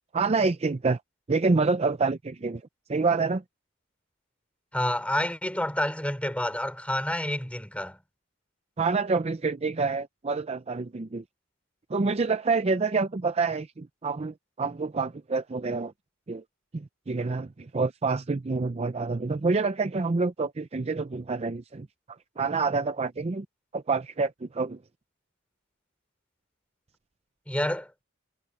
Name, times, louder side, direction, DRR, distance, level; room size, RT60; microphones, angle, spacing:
voice 1, 0.1-1.0 1.3-2.6 2.9-3.4 8.8-11.2 11.9-15.9 16.3-16.4 16.7-23.5 23.7-24.8, right 4 dB, 30° right, 0.5 m, -27 dB
voice 2, 4.7-8.0 27.5-28.0, left 1 dB, 5° left, 5.1 m, -29 dB
head